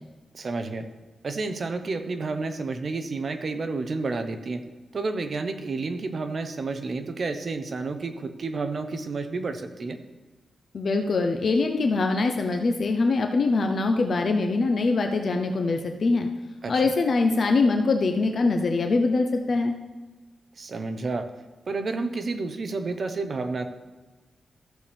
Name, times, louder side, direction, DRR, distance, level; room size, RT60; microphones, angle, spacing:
voice 1, 0.3-0.9 1.2-4.6 4.9-10.0 16.6-16.9 20.6-21.3 21.7-23.7, right 3 dB, 45° right, 8 dB, 0.7 m, -30 dB
voice 2, 10.7-16.3 16.7-19.7, left 3 dB, 50° left, 4 dB, 0.6 m, -23 dB
14.0 x 7.0 x 3.4 m, 1.2 s
wide cardioid pair, 135°, 0 cm